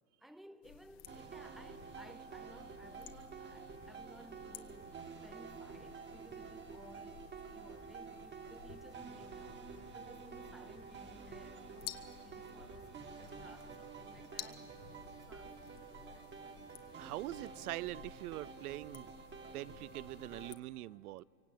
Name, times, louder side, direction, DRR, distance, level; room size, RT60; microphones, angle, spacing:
voice 1, 0.2-16.4, equal, ahead, 0.5 m, -59 dB
sound 1, 0.6-20.5, left 12 dB, 50° left, 1.6 m, -55 dB
sound 2, 1.1-20.6, right 5 dB, 25° right, 2.0 m, -50 dB
voice 2, 17.0-19.1 19.5-21.2, right 16 dB, 65° right, 0.6 m, -43 dB
25.0 x 23.5 x 8.9 m
hypercardioid pair, 125°, 47 cm